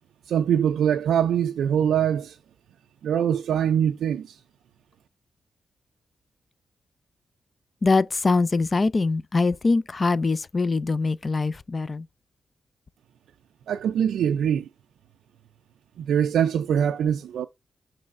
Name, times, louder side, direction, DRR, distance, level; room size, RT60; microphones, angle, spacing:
voice 1, 0.3-2.4 3.0-4.4 13.7-14.7 16.0-17.5, right 9 dB, 90° right, 0.3 m, -23 dB
voice 2, 7.8-12.1, left 3 dB, 35° left, 0.4 m, -23 dB
6.4 x 3.2 x 4.5 m
cardioid pair, 85°, 0 cm